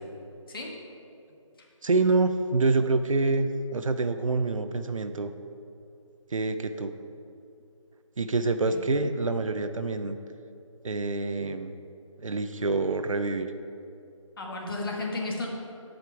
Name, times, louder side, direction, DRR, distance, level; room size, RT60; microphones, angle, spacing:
voice 1, 1.8-5.3 6.3-6.9 8.2-10.2 10.8-11.8 12.2-13.5, right 3 dB, 75° right, 9 dB, 0.6 m, -26 dB
voice 2, 14.4-15.5, left 2 dB, 45° left, -1 dB, 1.5 m, -33 dB
11.0 x 5.2 x 4.6 m, 2.6 s
figure-of-eight pair, 160°, 17 cm